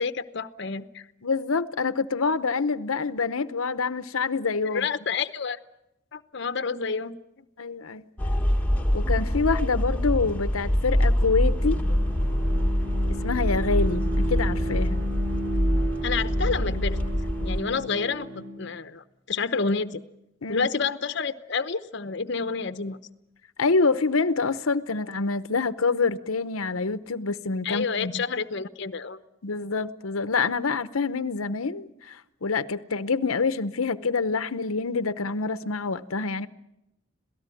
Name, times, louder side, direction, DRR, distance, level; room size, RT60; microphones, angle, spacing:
voice 1, 0.0-1.0 4.6-5.6 6.1-7.2 16.0-17.0 17.4-20.0 20.5-23.0 27.6-29.2, left 5 dB, 55° left, 0.9 m, -29 dB
voice 2, 1.2-4.9 7.6-8.0 8.9-11.8 13.2-15.0 20.4-20.7 23.6-28.2 29.4-36.5, left 4 dB, 85° left, 0.9 m, -26 dB
sound 1, 8.2-17.6, equal, 5° left, 1.4 m, -25 dB
Bowed string instrument, 11.0-18.8, right 1 dB, 60° right, 4.3 m, -35 dB
27.0 x 17.5 x 9.1 m
head